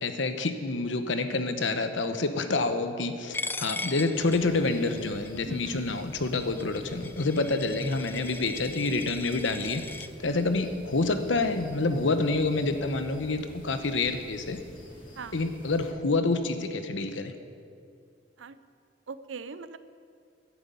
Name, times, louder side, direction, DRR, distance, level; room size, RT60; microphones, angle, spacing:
voice 1, 0.0-9.8 10.2-14.6 15.3-17.3, left 3 dB, 80° left, 8 dB, 1.0 m, -28 dB
Coin (dropping), 3.3-10.1, left 3 dB, 10° left, 0.3 m, -39 dB
sound 1, 4.1-15.9, equal, 45° left, 2.5 m, -49 dB
voice 2, 5.4-5.8 10.2-10.4 15.2-15.4 18.4-18.6 19.1-19.8, right 5 dB, 90° right, 13 dB, 0.6 m, -41 dB
10.5 x 9.3 x 8.4 m, 2.3 s
head